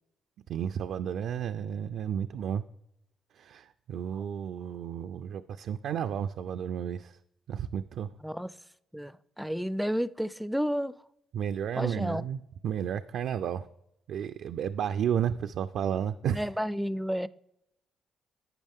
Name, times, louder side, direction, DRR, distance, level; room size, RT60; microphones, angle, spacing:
voice 1, 0.5-2.6 3.4-7.2 7.5-8.1 11.3-13.7 14.1-16.4, right 9 dB, 75° right, 0.3 m, -32 dB
voice 2, 8.9-11.0 11.8-12.3 16.3-17.3, equal, ahead, 0.4 m, -31 dB
11.5 x 8.1 x 3.6 m
cardioid pair, 90°, 0 cm